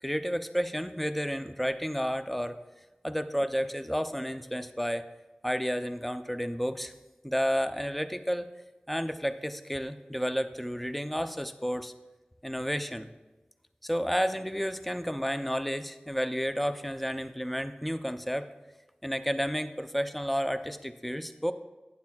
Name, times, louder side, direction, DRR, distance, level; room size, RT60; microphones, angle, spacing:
voice 1, 0.0-2.6 3.0-5.1 5.4-6.9 7.2-8.5 8.9-11.9 12.4-13.1 13.8-18.5 19.0-21.5, equal, 5° left, 10 dB, 0.5 m, -31 dB
11.5 x 9.5 x 2.3 m, 1.2 s
wide cardioid pair, 50°, 3 cm